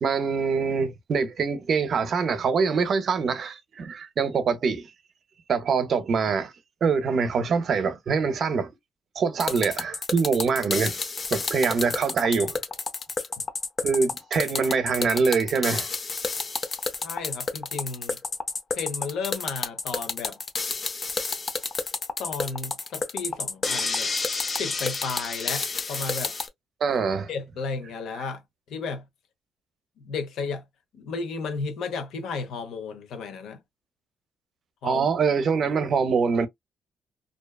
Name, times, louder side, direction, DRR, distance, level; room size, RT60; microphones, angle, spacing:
voice 1, 0.0-4.9 5.5-6.5 6.8-8.7 9.2-11.0 11.3-12.6 13.8-15.9 26.8-27.3 34.8-36.5, right 5 dB, 55° right, 0.5 m, -24 dB
sound 1, 9.4-26.5, left 4 dB, 35° left, 0.5 m, -30 dB
voice 2, 17.0-18.2 18.7-20.4 22.2-24.1 24.5-26.3 27.3-28.4 28.7-29.0 30.0-30.6 30.9-33.6 34.8-35.1, left 4 dB, 80° left, 0.7 m, -33 dB
2.5 x 2.2 x 2.2 m
cardioid pair, 90°, 0 cm